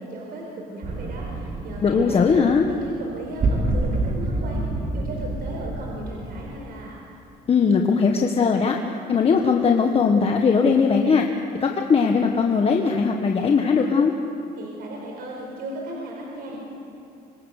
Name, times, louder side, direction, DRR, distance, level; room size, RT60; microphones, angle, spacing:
voice 1, 0.0-2.3 2.7-4.6 4.9-7.0 14.6-16.5, right 1 dB, 65° right, -1 dB, 4.9 m, -36 dB
sound 1, 0.8-6.6, right 2 dB, 45° right, 3.4 m, -28 dB
voice 2, 1.8-2.7 7.5-8.8 9.1-11.3 11.6-14.1, left 5 dB, 35° left, 2 dB, 1.5 m, -19 dB
25.5 x 25.5 x 6.7 m, 2.6 s
cardioid pair, 110°, 17 cm